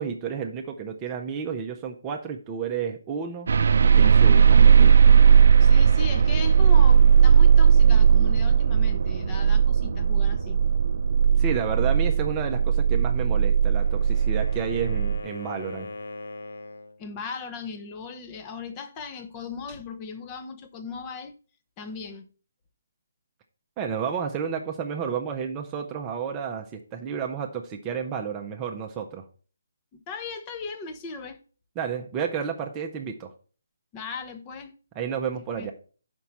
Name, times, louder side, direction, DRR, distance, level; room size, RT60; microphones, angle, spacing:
voice 1, 0.0-3.5 3.8-4.9 11.4-15.9 23.8-29.2 31.8-33.3 35.0-35.7, right 7 dB, 20° right, 0.7 m, -31 dB
sound 1, 3.5-15.2, right 7 dB, 60° right, 0.5 m, -17 dB
voice 2, 5.6-10.6 17.0-21.3 21.8-22.3 30.1-31.4 33.9-34.7 35.6-35.7, left 4 dB, 20° left, 0.8 m, -38 dB
Wind instrument woodwind instrument, 13.4-17.0, left 2 dB, 80° left, 0.9 m, -40 dB
5.6 x 5.3 x 6.0 m
hypercardioid pair, 155°, 0 cm